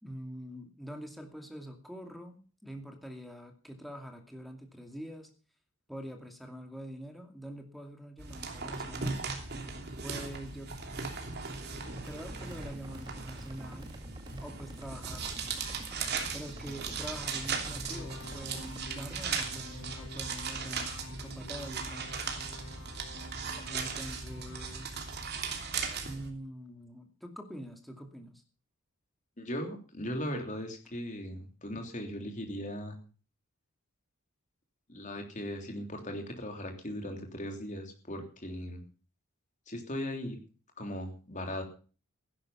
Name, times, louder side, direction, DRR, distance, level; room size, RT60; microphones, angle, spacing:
voice 1, 0.0-5.3 5.9-9.2 10.0-10.8 12.0-13.9 14.4-15.4 16.3-22.2 23.7-25.2 26.0-28.4, equal, ahead, 3 dB, 2.4 m, -45 dB
sound 1, 8.2-26.3, right 5 dB, 50° right, 3.0 m, -38 dB
sound 2, 11.9-18.9, right 1 dB, 20° right, 2.0 m, -49 dB
sound 3, 17.7-24.8, left 1 dB, 75° left, 2.7 m, -48 dB
voice 2, 29.4-33.0 34.9-38.8 39.7-40.4 40.8-41.6, equal, 35° left, 4 dB, 3.3 m, -38 dB
15.5 x 11.0 x 5.7 m, 0.38 s
head